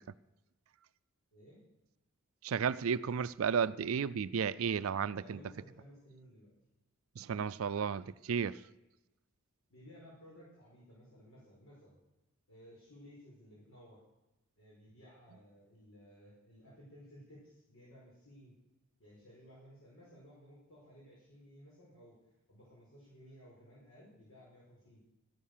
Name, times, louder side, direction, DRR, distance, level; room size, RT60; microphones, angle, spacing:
voice 1, 1.3-1.6 5.1-6.5 9.7-12.0 12.5-14.0 14.6-18.5 19.0-22.2 22.5-25.1, equal, 65° left, 4.7 m, -57 dB
voice 2, 2.4-5.4 7.2-8.6, right 6 dB, 75° right, 0.4 m, -33 dB
13.0 x 11.0 x 6.6 m
head